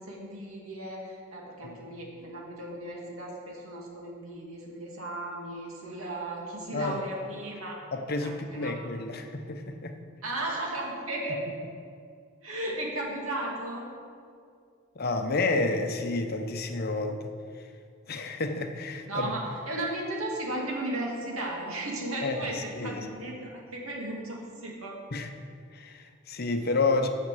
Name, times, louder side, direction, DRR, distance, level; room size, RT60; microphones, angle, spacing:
voice 1, 0.0-7.8 8.2-8.9 10.2-11.4 12.4-13.9 19.1-25.0, right 1 dB, 75° right, -2 dB, 2.3 m, -35 dB
voice 2, 7.9-10.0 15.0-17.3 18.1-19.3 22.2-22.4 22.8-23.0 25.1-25.3 25.7-27.1, left 3 dB, 45° left, 6 dB, 0.7 m, -30 dB
9.4 x 6.6 x 7.5 m, 2.3 s
head